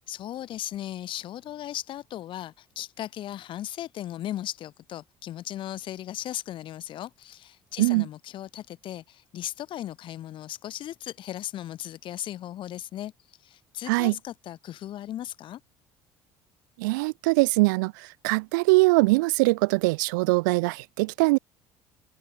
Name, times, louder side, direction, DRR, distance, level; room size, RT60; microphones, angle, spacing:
voice 1, 0.1-13.1 13.4-15.6, left 12 dB, 55° left, 1.1 m, -37 dB
voice 2, 16.8-21.4, right 25 dB, 90° right, 0.4 m, -22 dB
supercardioid pair, 85°, 10 cm